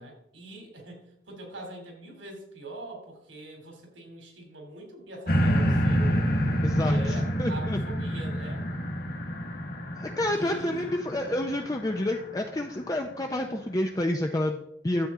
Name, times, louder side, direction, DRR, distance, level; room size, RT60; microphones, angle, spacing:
voice 1, 0.0-6.2 6.8-8.6 10.3-11.1, right 2 dB, 80° right, 2 dB, 3.0 m, -43 dB
sound 1, 5.3-12.6 13.2-13.3, equal, 50° left, 1.4 m, -28 dB
voice 2, 6.6-7.8 10.0-15.1, left 1 dB, 20° left, 3 dB, 0.5 m, -29 dB
12.5 x 8.0 x 3.7 m, 0.78 s
head